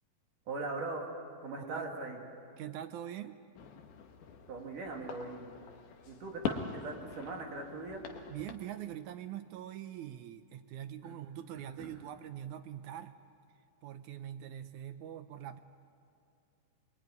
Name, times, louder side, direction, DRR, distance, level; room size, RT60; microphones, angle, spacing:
voice 1, 0.5-1.1 1.4-2.2 4.5-5.6 6.1-8.0 11.0-11.1 11.8-12.0, right 3 dB, 60° right, 1 dB, 4.0 m, -40 dB
voice 2, 1.6-1.9 2.6-3.4 8.3-13.1 13.8-15.6, right 11 dB, 75° right, 9 dB, 1.8 m, -43 dB
sound 1, 3.6-8.6, left 7 dB, 60° left, 2.6 m, -43 dB
24.0 x 22.0 x 9.6 m, 2.5 s
omnidirectional pair, 4.4 m